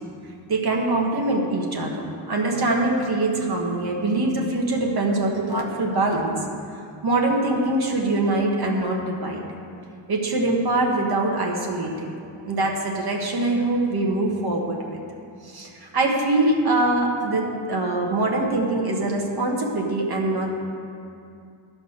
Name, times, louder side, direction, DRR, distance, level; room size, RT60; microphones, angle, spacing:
voice 1, 0.5-6.3 7.0-9.4 10.1-12.2 12.4-15.0 15.4-20.5, right 2 dB, 55° right, 0 dB, 1.5 m, -23 dB
12.0 x 5.3 x 6.6 m, 2.5 s
wide cardioid pair, 125°, 46 cm